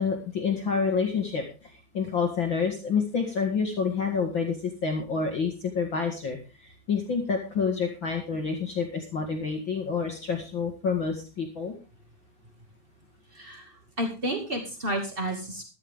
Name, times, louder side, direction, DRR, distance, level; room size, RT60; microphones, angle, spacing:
voice 1, 0.0-1.4 1.9-4.6 4.8-6.4 6.9-11.7, left 5 dB, 70° left, 2 dB, 1.1 m, -28 dB
voice 2, 13.3-15.6, right 1 dB, 85° right, 2 dB, 0.5 m, -31 dB
14.0 x 12.5 x 3.6 m, 0.33 s
omnidirectional pair, 5.4 m